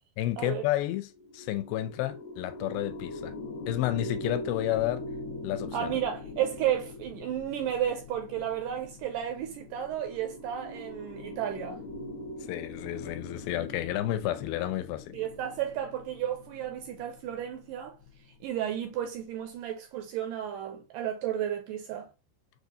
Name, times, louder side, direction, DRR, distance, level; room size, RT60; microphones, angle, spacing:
voice 1, 0.2-3.3 3.7-5.0 5.4-5.9 12.5-15.2, left 14 dB, 85° left, 2.3 m, -31 dB
sound 1, 1.1-18.5, left 2 dB, 65° left, 1.9 m, -42 dB
voice 2, 5.7-11.8 15.1-18.0 18.4-22.1, right 10 dB, 80° right, 2.0 m, -33 dB
6.4 x 2.4 x 2.7 m
omnidirectional pair, 4.3 m